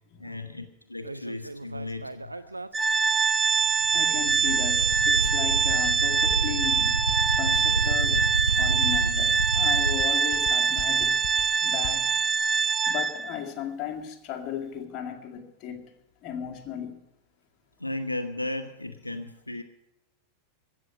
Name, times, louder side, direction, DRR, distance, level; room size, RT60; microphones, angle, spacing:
voice 1, 0.2-2.4 17.8-19.6, left 2 dB, 85° left, 0.8 m, -35 dB
sound 1, 1.0-2.7 3.0-3.1 3.5-10.0, right 2 dB, 80° right, 0.6 m, -30 dB
Organ, 2.7-13.4, right 6 dB, 15° right, 0.4 m, -24 dB
voice 2, 3.9-7.0 7.3-8.3 8.5-11.2 11.6-12.1 12.9-15.9 16.2-17.0, left 9 dB, 35° left, 2.1 m, -36 dB
sound 2, 4.8-12.2, left 13 dB, 55° left, 0.5 m, -41 dB
15.5 x 7.5 x 10.0 m
figure-of-eight pair, 90°, 0 cm